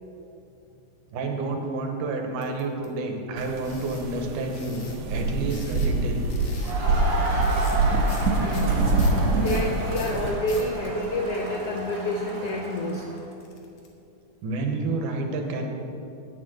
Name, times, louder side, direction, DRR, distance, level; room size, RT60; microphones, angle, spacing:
voice 1, 1.1-6.3 14.4-15.7, right 2 dB, 85° right, 3 dB, 2.7 m, -29 dB
sound 1, 2.4-2.9 3.6-4.1 4.5-5.0 5.5-6.0 6.3-6.8 7.4-7.8 8.1-8.3 8.5-10.7 11.3-13.9, left 5 dB, 60° left, 2.1 m, -45 dB
sound 2, 3.4-10.3, right 2 dB, 70° right, 2.2 m, -25 dB
Crowd, 6.6-13.2, right 1 dB, 45° right, 2.0 m, -32 dB
voice 2, 8.4-8.8 9.3-13.1, left 1 dB, 75° left, 0 dB, 1.4 m, -29 dB
10.0 x 6.8 x 7.8 m, 2.7 s
omnidirectional pair, 3.6 m